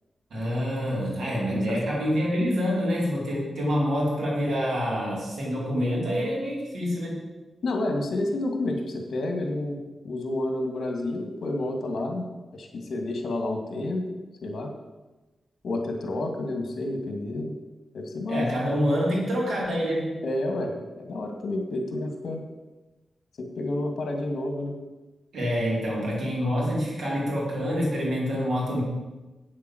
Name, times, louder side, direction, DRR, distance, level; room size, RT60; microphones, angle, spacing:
voice 1, 0.3-7.2 18.3-20.2 25.3-28.8, equal, 75° right, -5 dB, 4.5 m, -26 dB
voice 2, 7.6-9.8 10.0-14.1 14.4-14.7 15.6-17.6 17.9-18.5 20.2-22.4 23.4-24.7, left 2 dB, 65° left, 3 dB, 2.1 m, -30 dB
8.5 x 7.5 x 7.8 m, 1.1 s
wide cardioid pair, 165°, 0 cm